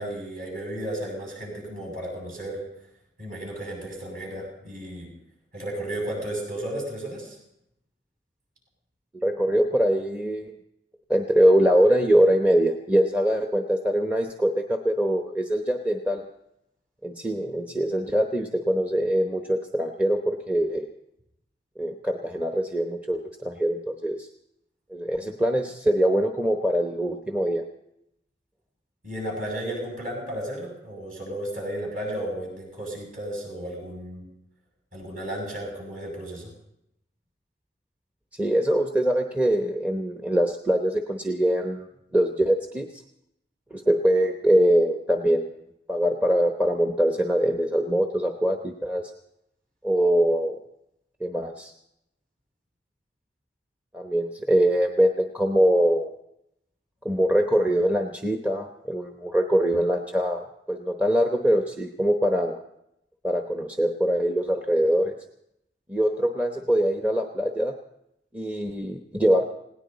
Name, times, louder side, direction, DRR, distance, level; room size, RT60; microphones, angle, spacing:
voice 1, 0.0-2.6 3.2-5.1 5.5-7.4 29.0-34.3 34.9-36.5, right 1 dB, 50° right, -1 dB, 7.4 m, -33 dB
voice 2, 9.1-10.5 11.1-16.3 17.0-20.9 21.8-24.3 24.9-27.6 38.4-41.9 42.1-42.9 43.7-45.5 45.9-49.0 49.8-50.6 51.2-51.7 53.9-56.1 57.0-62.6 63.2-65.1 65.9-67.7 68.3-69.5, equal, 10° right, 3 dB, 0.9 m, -23 dB
20.0 x 18.0 x 4.0 m, 0.80 s
head